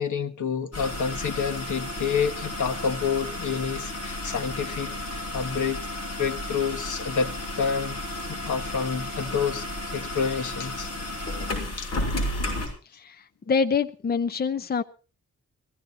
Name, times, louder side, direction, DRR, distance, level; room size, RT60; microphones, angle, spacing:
voice 1, 0.0-5.9 6.2-9.7 9.9-10.9 11.8-11.9, left 6 dB, 85° left, 1.4 m, -29 dB
sound 1, 0.7-12.7, left 1 dB, 55° left, 6.1 m, -33 dB
voice 2, 12.9-14.8, left 5 dB, 30° left, 0.6 m, -26 dB
17.0 x 14.5 x 4.1 m
wide cardioid pair, 160°, 30 cm